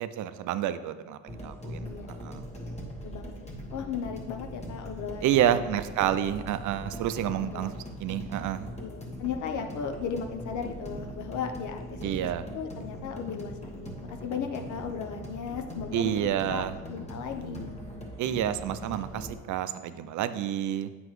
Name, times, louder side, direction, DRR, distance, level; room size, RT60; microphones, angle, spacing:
voice 1, 0.0-1.9 2.2-2.4 5.2-7.7 8.0-8.7 12.0-12.5 15.9-16.8 18.2-20.9, right 11 dB, 75° right, 12 dB, 0.5 m, -29 dB
sound 1, 1.3-19.4, equal, 20° left, 1.3 m, -41 dB
voice 2, 1.8-2.2 3.0-6.2 7.3-7.7 8.8-12.0 12.5-17.8, left 7 dB, 75° left, 5 dB, 0.8 m, -36 dB
7.8 x 6.0 x 3.1 m, 1.4 s
cardioid pair, 90°, 30 cm